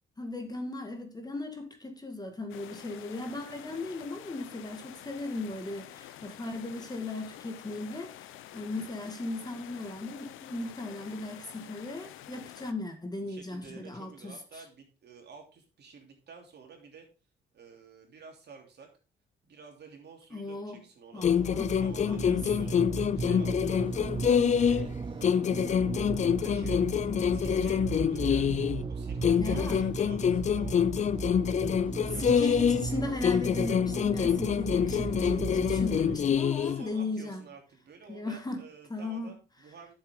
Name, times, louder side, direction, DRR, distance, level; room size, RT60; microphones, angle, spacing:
voice 1, 0.2-14.6 20.3-20.8 21.1-21.8 22.0-22.5 29.4-29.9 32.1-37.4 38.1-38.6 38.9-39.3, left 2 dB, 20° left, 2.0 m, -37 dB
sound 1, 2.5-12.7, left 13 dB, 85° left, 0.7 m, -48 dB
voice 2, 13.1-17.1 17.5-18.9 19.5-21.3 21.8-23.9 24.2-26.8 27.3-30.9 31.8-32.8 34.9-35.2 36.4-39.9, right 5 dB, 55° right, 3.1 m, -51 dB
sound 2, 21.2-24.9 25.2-28.8 29.2-32.9 33.2-36.8, left 8 dB, 35° left, 0.4 m, -26 dB
sound 3, 21.2-36.2, right 4 dB, 25° right, 0.7 m, -36 dB
9.3 x 7.2 x 3.7 m
cardioid pair, 90°, 20 cm